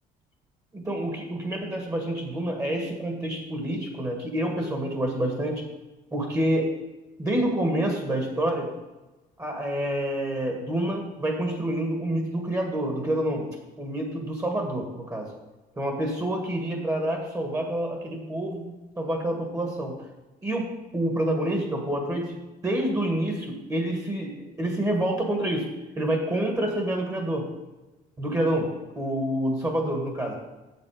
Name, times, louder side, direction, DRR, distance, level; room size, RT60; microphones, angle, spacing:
voice 1, 0.7-5.6 6.1-6.7 7.2-8.7 9.4-13.5 13.8-15.3 15.8-18.6 19.0-20.0 20.4-20.7 20.9-22.3 22.6-25.7 26.0-27.5 28.2-28.7 29.0-30.4, right 1 dB, 20° right, 2 dB, 1.8 m, -27 dB
7.7 x 6.9 x 5.0 m, 1.1 s
cardioid pair, 110°, 17 cm